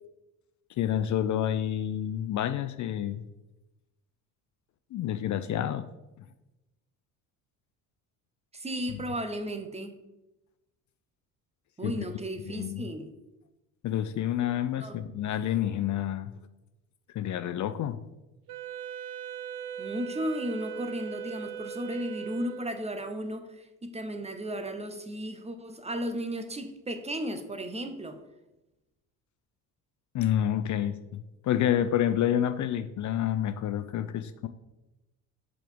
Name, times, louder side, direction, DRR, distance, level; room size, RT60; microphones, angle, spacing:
voice 1, 0.8-3.2 4.9-5.9 11.8-11.9 12.5-12.8 13.8-16.3 17.1-18.0 30.1-34.5, left 10 dB, 50° left, 11 dB, 0.5 m, -28 dB
voice 2, 8.5-9.9 11.8-13.1 14.8-15.0 19.8-28.2, equal, 15° right, 8 dB, 0.8 m, -35 dB
Wind instrument woodwind instrument, 18.5-23.0, right 9 dB, 60° right, 0.7 m, -39 dB
5.9 x 4.6 x 5.1 m, 0.98 s
supercardioid pair, 90°, 39 cm